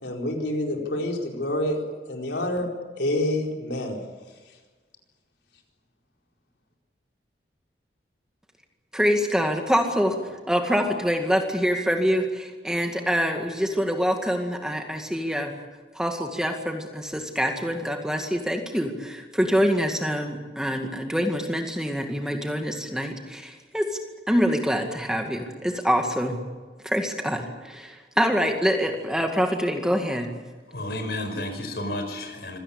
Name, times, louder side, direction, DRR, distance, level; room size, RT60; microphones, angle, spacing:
voice 1, 0.0-2.7 3.0-4.0, left 1 dB, 80° left, 1 dB, 4.6 m, -27 dB
voice 2, 8.9-15.5 15.9-24.0 24.3-26.4 26.8-30.3, equal, 5° right, 3 dB, 2.0 m, -25 dB
voice 3, 30.7-32.6, left 1 dB, 65° left, 6 dB, 5.4 m, -31 dB
25.5 x 17.5 x 8.7 m, 1.4 s
head